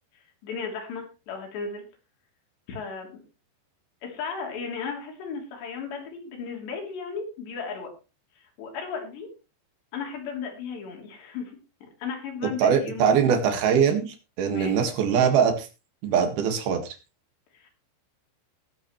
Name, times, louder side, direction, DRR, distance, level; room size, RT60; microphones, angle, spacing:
voice 1, 0.4-1.9 2.7-3.2 4.0-7.9 8.4-9.3 9.9-11.5 12.0-13.1 14.5-14.8 17.6-17.7, left 5 dB, 70° left, 2 dB, 5.5 m, -35 dB
voice 2, 12.6-15.7 16.0-17.0, right 7 dB, 60° right, 6 dB, 3.5 m, -22 dB
20.5 x 8.6 x 3.2 m, 0.30 s
omnidirectional pair, 5.2 m